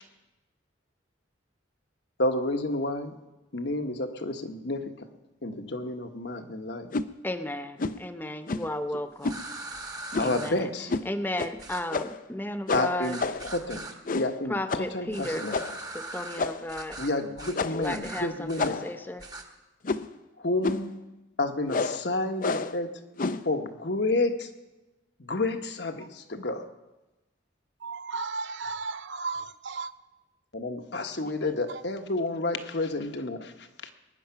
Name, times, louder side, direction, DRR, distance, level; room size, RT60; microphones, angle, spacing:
voice 1, 2.2-3.2 3.5-5.1 5.4-6.9 10.2-10.9 12.7-13.9 14.1-15.6 17.0-18.8 20.4-21.0 21.4-23.0 23.4-24.5 25.2-26.6 30.5-33.9, left 2 dB, 60° left, 1.3 m, -30 dB
sound 1, 6.9-7.1 7.8-8.0 8.5-8.8 9.2-9.4 10.1-10.4 10.9-11.1 11.4-11.5 11.9-12.3 12.7-13.5 14.0-14.4 14.7-14.9 15.5-15.8 16.4-16.8 17.5-17.9 18.6-19.0 19.8-20.2 20.6-20.9 21.7-22.0 22.4-22.8 23.2-23.5, left 3 dB, 45° left, 0.5 m, -30 dB
voice 2, 7.2-9.4 10.2-10.7 11.1-13.2 14.5-15.5 15.9-17.0 17.6-19.2 31.2-31.5, left 1 dB, 10° left, 0.7 m, -34 dB
sound 2, 9.2-10.5 11.6-11.8 13.0-13.9 15.1-16.4 16.7-17.1 17.4-17.6 17.8-18.7 19.2-19.4, right 2 dB, 20° right, 1.3 m, -40 dB
voice 3, 27.8-29.9, right 4 dB, 70° right, 0.6 m, -34 dB
21.5 x 10.0 x 5.8 m
head